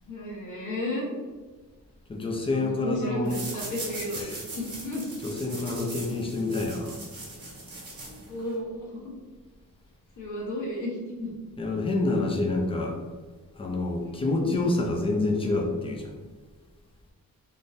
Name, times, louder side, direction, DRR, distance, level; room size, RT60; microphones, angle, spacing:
voice 1, 0.0-1.0 2.5-5.0 8.3-9.1 10.2-11.3 14.0-14.5, left 1 dB, 60° left, -4 dB, 1.1 m, -34 dB
voice 2, 2.1-3.4 4.2-4.3 5.2-7.0 11.6-13.0 13.5-16.1, left 2 dB, 15° left, 0 dB, 0.4 m, -27 dB
sound 1, 3.2-8.6, right 2 dB, 80° right, 1.4 m, -40 dB
3.6 x 2.6 x 2.6 m, 1.4 s
wide cardioid pair, 155°, 35 cm